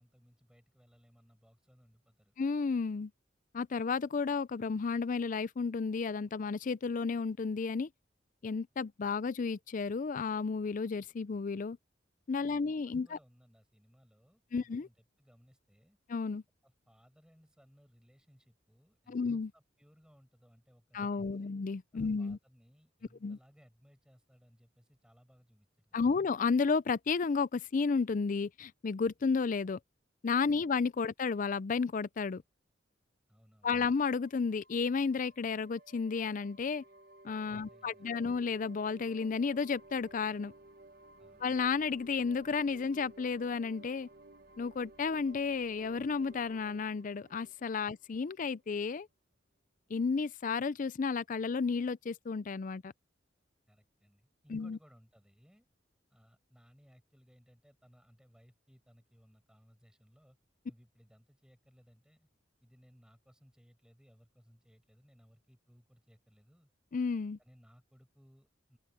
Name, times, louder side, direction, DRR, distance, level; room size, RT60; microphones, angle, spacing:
voice 1, 0.0-2.3 12.4-16.0 16.6-21.5 21.9-26.2 30.4-30.6 33.3-33.8 37.4-38.3 41.2-41.4 53.7-55.7 56.1-60.4 60.6-62.3 62.6-66.7 67.4-68.8, equal, 5° right, 7.4 m, -64 dB
voice 2, 2.4-3.1 3.5-7.9 8.4-11.8 12.3-13.2 14.5-14.9 16.1-16.4 19.1-19.5 20.9-22.4 23.2-23.4 25.9-29.8 30.2-32.4 33.6-36.8 37.2-40.5 41.4-44.1 44.6-49.1 49.9-52.9 54.5-54.8 66.9-67.4, left 5 dB, 45° left, 0.4 m, -32 dB
sound 1, 34.1-48.5, right 2 dB, 55° right, 1.3 m, -57 dB
open air
head